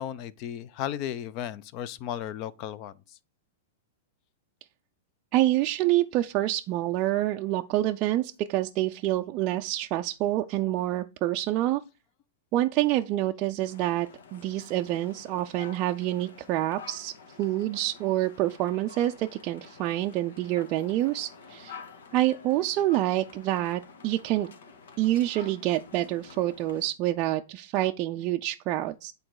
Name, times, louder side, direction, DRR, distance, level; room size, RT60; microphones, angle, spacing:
voice 1, 0.0-2.9, left 10 dB, 35° left, 0.5 m, -35 dB
voice 2, 5.3-11.8 12.5-17.1 17.4-21.8 22.1-24.5 25.0-29.1, right 15 dB, 35° right, 0.4 m, -27 dB
sound 1, 13.6-26.9, left 5 dB, 85° left, 1.5 m, -49 dB
8.7 x 4.0 x 4.7 m
supercardioid pair, 150°, 0 cm